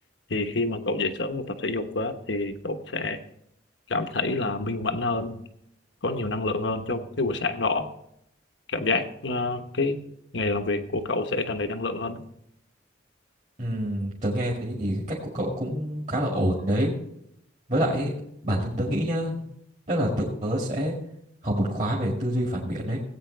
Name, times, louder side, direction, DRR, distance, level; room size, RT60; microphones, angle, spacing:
voice 1, 0.3-3.2 3.9-5.3 6.0-7.9 8.7-10.0 10.3-12.2, left 3 dB, 70° left, 7 dB, 1.1 m, -27 dB
voice 2, 13.6-16.9 17.7-18.1 18.4-19.4 19.9-20.1 20.4-20.9 21.4-23.0, equal, 40° right, -4 dB, 2.2 m, -26 dB
17.5 x 8.9 x 3.3 m, 0.76 s
head